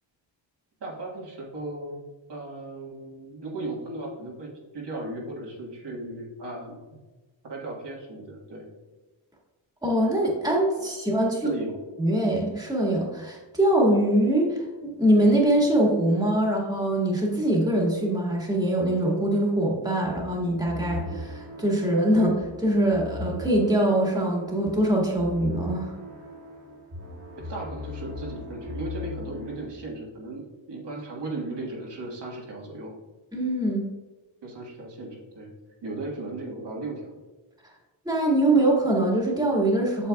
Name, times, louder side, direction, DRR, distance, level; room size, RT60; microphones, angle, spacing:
voice 1, 0.8-2.0 2.3-6.8 7.4-8.7 11.4-11.7 27.4-32.9 34.4-35.5 35.8-37.1, right 2 dB, 60° right, -3 dB, 1.7 m, -36 dB
voice 2, 9.8-11.5 12.0-25.9 33.3-33.9 38.1-40.1, right 1 dB, 10° right, -3 dB, 1.9 m, -23 dB
sound 1, 20.2-29.7, left 2 dB, 30° right, 1.7 m, -39 dB
8.4 x 6.7 x 2.3 m, 1.2 s
cardioid pair, 100°, 47 cm